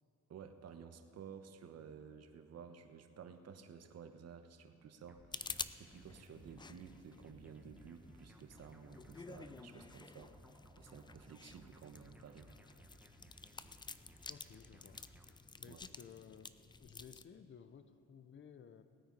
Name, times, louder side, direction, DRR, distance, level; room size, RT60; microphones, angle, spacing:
voice 1, 0.3-12.5 15.7-15.8, right 7 dB, 55° right, 8 dB, 1.0 m, -54 dB
sound 1, 5.1-15.4, right 1 dB, 5° right, 1.3 m, -62 dB
sound 2, 5.3-17.2, left 4 dB, 15° left, 0.4 m, -51 dB
voice 2, 14.3-15.0 15.6-16.5 16.8-18.8, left 7 dB, 40° left, 11 dB, 0.7 m, -56 dB
18.5 x 9.0 x 5.2 m, 2.5 s
cardioid pair, 90°, 30 cm